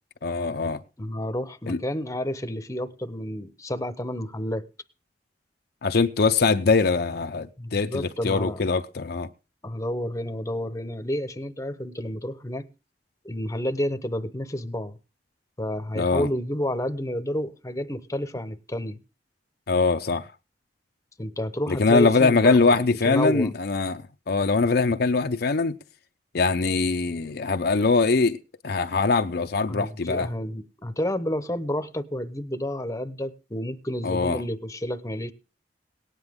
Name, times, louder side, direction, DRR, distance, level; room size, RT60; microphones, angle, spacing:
voice 1, 0.2-0.8 1.7-1.8 5.8-9.3 16.0-16.3 19.7-20.3 21.7-25.8 26.3-28.4 28.6-30.3 34.0-34.4, left 4 dB, 60° left, 0.6 m, -22 dB
voice 2, 1.0-4.6 7.6-8.6 9.6-12.7 13.2-15.0 15.6-19.0 21.2-23.5 29.7-35.3, left 1 dB, 20° left, 0.9 m, -30 dB
18.0 x 9.7 x 3.6 m
head